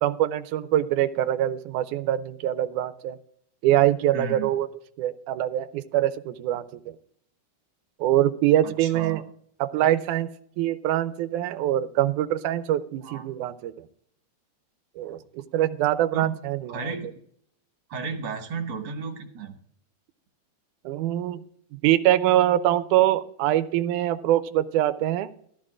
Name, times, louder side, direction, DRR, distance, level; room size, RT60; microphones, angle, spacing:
voice 1, 0.0-3.2 3.6-4.7 5.0-6.7 8.0-9.2 9.6-10.3 10.6-13.7 15.0-17.0 20.9-21.4 21.8-25.3, right 13 dB, 85° right, 12 dB, 2.1 m, -24 dB
voice 2, 4.1-4.5 8.6-9.2 13.0-13.2 16.1-16.4 16.7-17.1 17.9-19.5, right 5 dB, 45° right, 3 dB, 1.8 m, -33 dB
14.5 x 14.0 x 2.5 m, 0.67 s
omnidirectional pair, 3.5 m